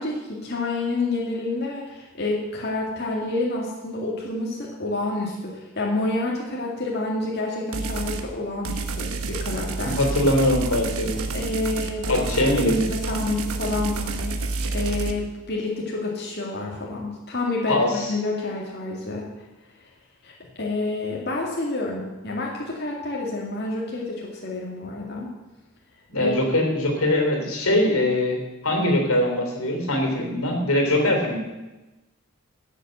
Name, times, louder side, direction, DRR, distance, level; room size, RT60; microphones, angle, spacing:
voice 1, 0.0-10.0 11.3-19.3 20.2-25.3 26.2-26.4, left 2 dB, 50° left, -3 dB, 2.1 m, -29 dB
sound 1, 7.7-8.3 8.6-15.1, right 3 dB, 85° right, 1.2 m, -29 dB
voice 2, 9.8-11.2 12.1-12.8 17.7-18.1 26.1-28.4 28.6-31.4, left 1 dB, 85° left, 3 dB, 3.3 m, -22 dB
13.0 x 7.4 x 7.9 m, 1.1 s
head